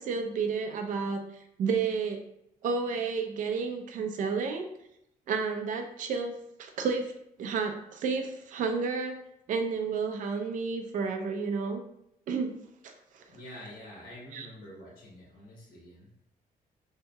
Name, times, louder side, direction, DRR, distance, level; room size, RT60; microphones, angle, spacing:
voice 1, 0.0-2.2 2.6-4.7 5.3-6.3 6.6-7.1 7.4-9.2 9.5-11.8 12.3-12.5 12.8-13.2 14.3-14.5, right 5 dB, 60° right, 5 dB, 0.4 m, -31 dB
voice 2, 13.3-16.1, left 1 dB, 80° left, -4 dB, 1.2 m, -47 dB
2.8 x 2.7 x 2.2 m, 0.80 s
cardioid pair, 160°, 15 cm